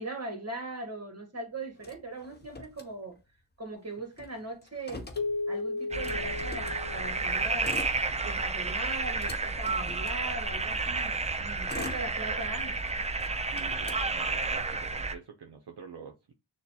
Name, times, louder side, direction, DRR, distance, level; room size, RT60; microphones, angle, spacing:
voice 1, 0.0-3.2 3.6-5.1 5.5-7.8 8.2-12.8, right 2 dB, 35° right, 1.6 m, -40 dB
Motor vehicle (road), 1.8-3.4 3.7-3.8 4.1-6.8 7.5-8.5 8.9-10.7 11.3-12.7 13.2-14.7, left 3 dB, 20° left, 0.7 m, -45 dB
Keyboard (musical), 5.2-8.1, left 3 dB, 65° left, 0.7 m, -35 dB
sound 1, 5.9-15.1, right 3 dB, 15° right, 0.3 m, -31 dB
voice 2, 11.6-11.9 13.4-16.3, right 6 dB, 60° right, 0.7 m, -46 dB
6.4 x 2.3 x 2.8 m
wide cardioid pair, 65°, 46 cm